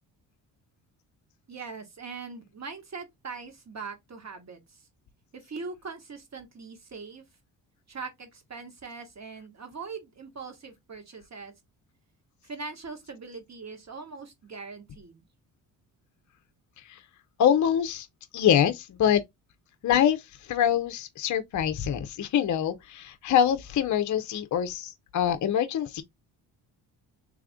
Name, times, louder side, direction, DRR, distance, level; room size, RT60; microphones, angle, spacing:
voice 1, 1.5-4.9 5.3-7.2 7.9-11.5 12.4-15.3, right 4 dB, 35° right, 1.5 m, -41 dB
voice 2, 17.4-18.1 18.3-19.2 19.8-20.2 20.5-26.0, left 9 dB, 40° left, 0.6 m, -24 dB
3.4 x 2.3 x 3.5 m
supercardioid pair, 55°, 46 cm